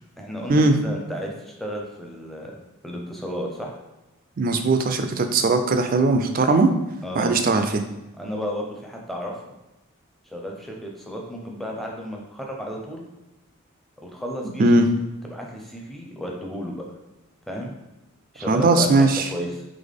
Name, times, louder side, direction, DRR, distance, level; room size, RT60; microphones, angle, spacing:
voice 1, 0.2-2.5 2.8-3.8 7.0-7.4 8.2-9.5 10.3-13.0 14.0-14.7 15.3-16.8 17.5-17.7 18.3-19.6, equal, ahead, -1 dB, 0.6 m, -33 dB
voice 2, 4.4-6.7 7.2-7.8 14.6-14.9 18.5-19.2, right 3 dB, 40° right, 7 dB, 0.4 m, -19 dB
4.0 x 3.4 x 3.5 m, 0.99 s
head